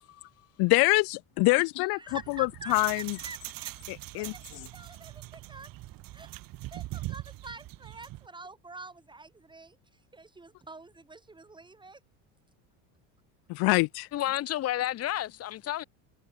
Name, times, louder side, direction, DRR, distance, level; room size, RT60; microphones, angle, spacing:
voice 1, 0.6-3.2 3.9-4.7 13.5-14.1, left 26 dB, 75° left, 3.6 m, -26 dB
voice 2, 1.9-3.7 4.1-5.7 6.1-6.3 6.7-12.0, right 3 dB, 10° right, 5.2 m, -47 dB
sound 1, 2.1-8.3, right 17 dB, 65° right, 7.9 m, -42 dB
voice 3, 14.1-15.8, left 13 dB, 40° left, 1.0 m, -31 dB
cardioid pair, 130°, 37 cm